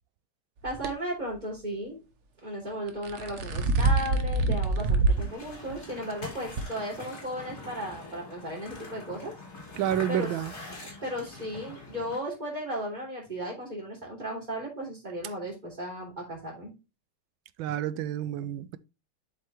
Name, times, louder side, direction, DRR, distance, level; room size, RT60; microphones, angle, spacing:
voice 1, 0.6-2.0 2.4-9.3 10.1-10.3 11.0-16.7, equal, 20° right, 3.4 m, -35 dB
sound 1, 0.7-0.9 2.9-5.3 5.7-5.8 6.6-6.7, right 3 dB, 50° right, 0.9 m, -25 dB
sound 2, 5.1-12.2, left 2 dB, 30° left, 2.6 m, -44 dB
voice 2, 9.8-10.5 17.6-18.8, right 11 dB, 75° right, 1.3 m, -29 dB
7.9 x 5.6 x 3.0 m
omnidirectional pair, 2.3 m